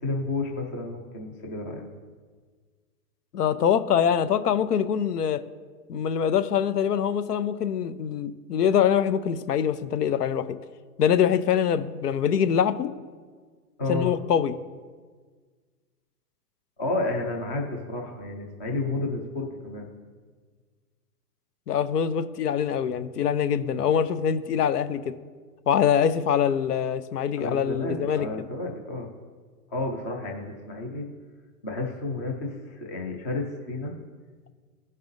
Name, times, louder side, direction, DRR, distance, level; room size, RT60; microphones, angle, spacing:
voice 1, 0.0-1.9 13.8-14.1 16.8-19.9 27.4-29.1 29.7-31.1 31.6-33.9, left 2 dB, 15° left, 1 dB, 0.3 m, -31 dB
voice 2, 3.3-5.4 5.9-10.5 11.0-12.9 13.9-14.5 21.7-25.1 25.7-28.4, left 8 dB, 85° left, 13 dB, 0.7 m, -24 dB
16.5 x 5.5 x 2.6 m, 1.5 s
hypercardioid pair, 130°, 46 cm